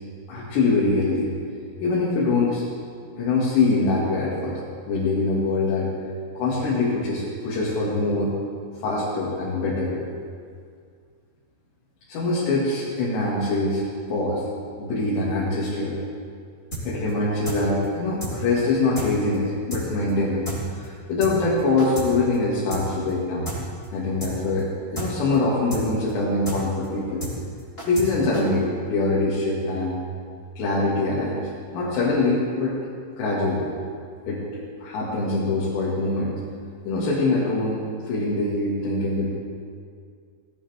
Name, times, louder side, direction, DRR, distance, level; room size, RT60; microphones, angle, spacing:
voice 1, 0.3-1.3 1.8-2.6 3.2-4.6 4.9-5.9 6.4-8.3 8.8-10.1 12.1-14.4 14.8-16.0 16.8-20.5 20.7-23.5 23.9-24.7 24.9-27.2 27.8-30.0 30.6-31.4 31.7-32.8 33.2-33.7 34.3-36.3 36.9-39.3, left 3 dB, 65° left, -7 dB, 4.5 m, -23 dB
sound 1, 16.7-16.8 17.1-17.2 17.4-17.6 17.8-17.9 18.2-18.3 18.6-18.7 18.9-19.1 19.3-19.4 19.7-19.8 20.1-20.2 20.4-20.6 20.8-20.9 21.2-21.3 21.6-22.1 22.3-22.4 22.7-22.8 23.1-23.2 23.4-23.6 23.8-23.9 24.2-24.3 24.6-24.7 24.9-25.1 25.3-25.4 25.7-25.8 26.1-26.2 26.4-26.6 26.8-26.9 27.2-27.3 27.6-28.1 28.3-28.4, right 1 dB, 15° left, 3.8 m, -31 dB
19.0 x 17.5 x 3.6 m, 2.1 s
omnidirectional pair, 5.6 m